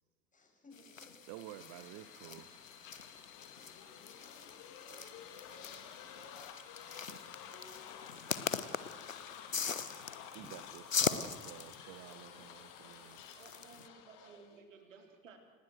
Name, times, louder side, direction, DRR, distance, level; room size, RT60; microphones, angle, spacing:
voice 1, 0.3-1.2 8.7-10.6 11.0-11.1 11.7-11.9 13.5-13.7, left 3 dB, 20° left, 1 dB, 7.7 m, -63 dB
sound 1, 0.7-13.9, left 6 dB, 85° left, 1.2 m, -42 dB
sound 2, 1.1-14.6, left 8 dB, 50° left, 3.4 m, -52 dB
voice 2, 1.3-2.5 10.3-13.2, right 14 dB, 50° right, 12 dB, 1.4 m, -51 dB
voice 3, 13.3-15.4, right 5 dB, 75° right, 6 dB, 4.0 m, -57 dB
29.0 x 19.0 x 6.5 m, 1.5 s
figure-of-eight pair, 75°, 38 cm